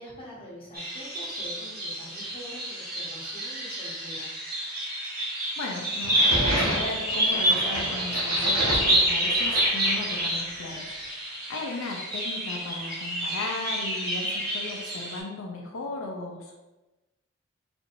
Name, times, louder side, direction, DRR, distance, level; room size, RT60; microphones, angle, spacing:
voice 1, 0.0-4.3, equal, 25° left, -6 dB, 1.2 m, -45 dB
sound 1, 0.7-15.2, right 1 dB, 45° right, 1.5 m, -28 dB
voice 2, 5.6-11.0 11.2-16.5, left 2 dB, 80° left, 0 dB, 0.6 m, -36 dB
sound 2, 6.0-10.4, equal, 85° right, 1.4 m, -31 dB
4.4 x 4.3 x 2.6 m, 1.1 s
head